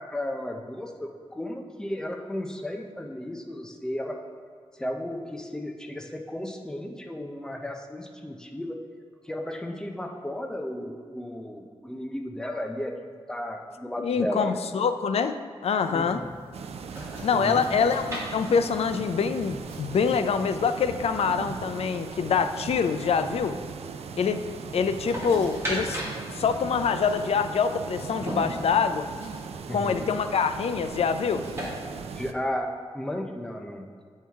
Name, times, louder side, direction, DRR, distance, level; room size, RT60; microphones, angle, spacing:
voice 1, 0.0-4.3 4.8-8.8 9.2-14.6 15.9-16.2 17.3-17.9 29.7-30.1 32.2-33.9, left 1 dB, 5° left, 3 dB, 0.5 m, -34 dB
voice 2, 14.0-15.3 15.6-16.2 17.2-23.6 24.2-24.4 24.7-26.0 26.3-29.1 29.7-31.4, left 6 dB, 75° left, 9 dB, 0.4 m, -25 dB
sound 1, 15.8-31.7, equal, 25° right, 1.5 m, -41 dB
sound 2, 16.5-32.3, right 6 dB, 80° right, 0.4 m, -39 dB
8.5 x 4.6 x 3.4 m, 2.1 s
wide cardioid pair, 180°, 10 cm